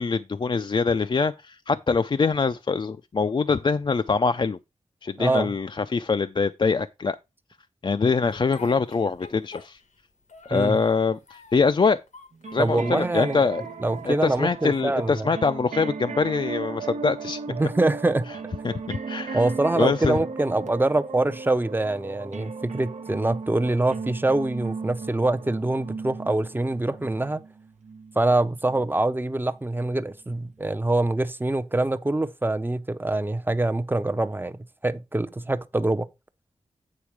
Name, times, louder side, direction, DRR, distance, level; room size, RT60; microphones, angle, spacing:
voice 1, 0.0-4.6 5.0-7.2 7.8-9.8 10.5-12.0 12.5-13.6 14.0-17.4 18.6-19.4 19.8-20.2, left 4 dB, 40° left, 0.4 m, -24 dB
voice 2, 5.2-5.5 10.5-10.8 12.6-13.4 13.8-15.3 17.5-18.3 19.3-27.4 28.2-34.6 34.8-36.1, right 2 dB, 15° right, 0.6 m, -24 dB
Speech, 8.3-10.0 10.3-11.7 12.1-13.1 13.6-14.4, left 5 dB, 90° left, 1.2 m, -47 dB
sound 1, 12.3-29.1 29.8-29.9, right 4 dB, 80° right, 0.8 m, -37 dB
8.8 x 4.6 x 4.6 m
wide cardioid pair, 90°, 12 cm